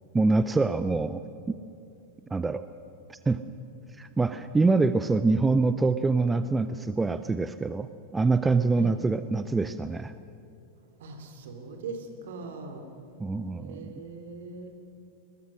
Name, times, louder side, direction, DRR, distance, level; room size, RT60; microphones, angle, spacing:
voice 1, 0.1-1.2 1.5-1.6 2.3-2.6 3.1-3.4 4.0-10.1 13.2-13.9, right 3 dB, 10° right, 12 dB, 0.6 m, -25 dB
voice 2, 11.0-12.9 13.5-14.7, right 4 dB, 60° right, 5 dB, 2.9 m, -40 dB
21.5 x 20.5 x 6.4 m, 2.7 s
figure-of-eight pair, 90°, 0 cm